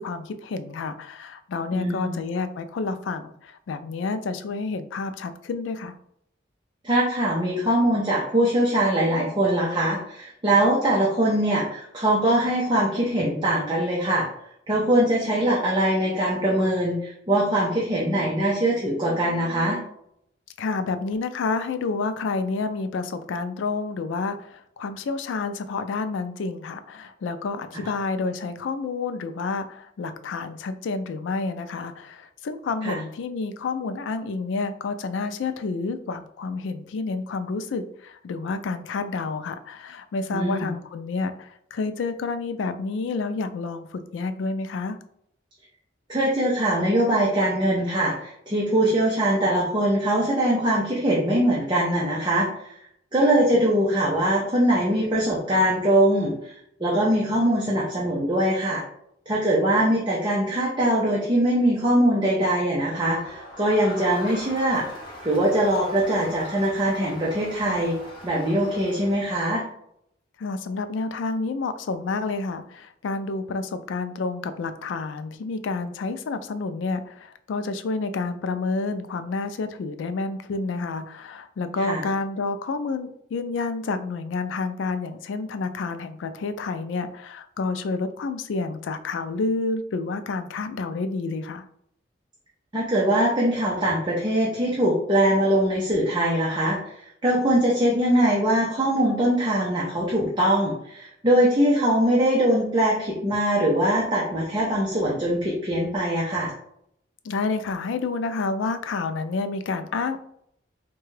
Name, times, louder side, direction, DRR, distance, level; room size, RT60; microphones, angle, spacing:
voice 1, 0.0-5.9 20.6-45.0 70.4-91.6 107.2-110.2, left 3 dB, 80° left, 10 dB, 0.3 m, -29 dB
voice 2, 1.7-2.1 6.8-14.3 14.7-19.8 32.8-32.9 40.3-40.7 46.1-52.7 53.1-56.3 56.8-58.8 59.3-64.9 65.2-68.0 68.2-69.6 81.8-82.0 92.7-96.9 97.2-106.5, right 1 dB, 25° right, -5 dB, 0.6 m, -22 dB
Crowd, 62.8-69.6, equal, 25° left, 1.0 m, -41 dB
3.7 x 2.2 x 3.1 m, 0.71 s
head